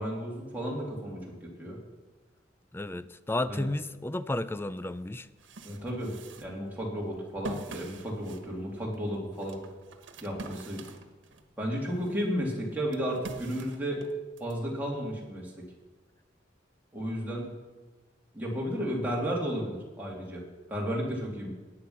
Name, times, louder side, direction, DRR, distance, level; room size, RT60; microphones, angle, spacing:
voice 1, 0.0-1.8 3.5-3.6 5.6-6.1 6.4-9.6 10.2-10.8 11.6-14.0 14.4-15.5 16.9-17.5 18.3-20.4 20.7-21.5, equal, 10° right, 3.2 m, -33 dB
voice 2, 2.7-5.3, left 1 dB, 10° left, 0.4 m, -32 dB
sound 1, 4.6-4.7 5.1-11.5 11.9-14.6, right 2 dB, 85° right, 1.4 m, -46 dB
16.5 x 9.9 x 5.8 m
head